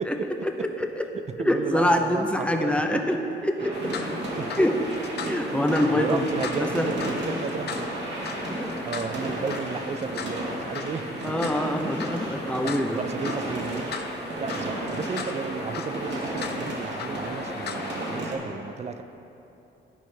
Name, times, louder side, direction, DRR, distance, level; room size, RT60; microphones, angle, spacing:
voice 1, 0.0-1.0 1.4-3.7 4.6-4.8 5.3-6.9 8.5-8.9 11.2-13.3, left 1 dB, 5° left, 3 dB, 0.6 m, -25 dB
voice 2, 1.1-3.0 4.4-4.5 5.9-7.9 8.8-11.1 11.6-11.7 12.6-13.9 14.4-19.0, right 5 dB, 35° right, 9 dB, 0.5 m, -33 dB
sound 1, 3.6-18.4, right 1 dB, 65° right, 1.7 m, -33 dB
sound 2, 3.7-18.2, left 6 dB, 55° left, 0.6 m, -39 dB
13.5 x 4.5 x 3.4 m, 2.9 s
cardioid pair, 90°, 20 cm